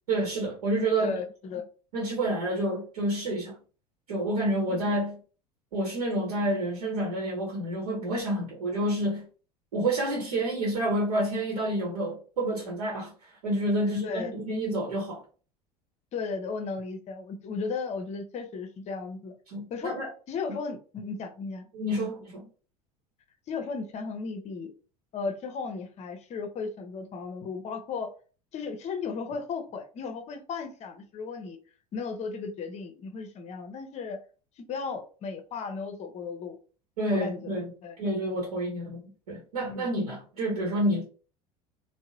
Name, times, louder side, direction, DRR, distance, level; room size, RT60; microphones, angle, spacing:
voice 1, 0.1-1.2 1.9-3.6 4.1-5.2 5.7-9.3 9.7-15.2 19.5-20.1 20.5-20.6 21.7-22.4 37.0-41.0, right 1 dB, 70° right, 0.9 m, -29 dB
voice 2, 1.0-1.6 4.7-4.9 13.8-14.3 16.1-19.3 19.7-20.0 20.3-21.6 22.0-22.1 23.5-24.7 25.1-28.1 28.5-31.6 31.9-34.2 34.6-36.6 37.1-37.5 37.8-38.0 38.2-38.4 39.7-39.9, left 4 dB, 35° left, 0.7 m, -35 dB
3.7 x 2.1 x 2.7 m
figure-of-eight pair, 70°, 20 cm